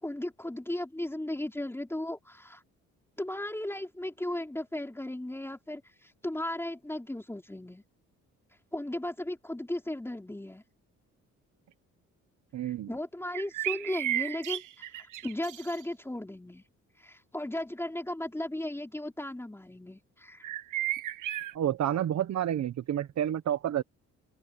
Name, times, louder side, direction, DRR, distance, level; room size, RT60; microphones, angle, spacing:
voice 1, 0.0-2.6 3.2-7.8 8.7-10.6 12.6-16.6 17.0-20.5, left 1 dB, 10° left, 3.7 m, -36 dB
voice 2, 12.5-12.9 21.5-23.8, right 11 dB, 65° right, 1.3 m, -29 dB
sound 1, 13.3-15.8 20.4-21.5, right 14 dB, 85° right, 1.5 m, -33 dB
open air
cardioid pair, 90°, 30 cm